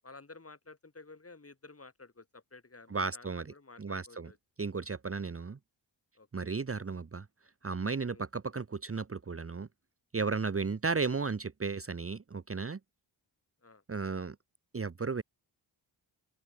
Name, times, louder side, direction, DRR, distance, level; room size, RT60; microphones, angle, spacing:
voice 1, 0.0-4.4 6.2-6.6 8.1-8.3 10.6-10.7 13.6-13.8, left 3 dB, 30° left, 7.4 m, -53 dB
voice 2, 2.9-3.5 3.8-4.3 4.6-5.6 6.3-7.2 7.6-9.7 10.1-12.8 13.9-14.3 14.7-15.2, right 4 dB, 30° right, 1.3 m, -34 dB
open air
cardioid pair, 70°, 46 cm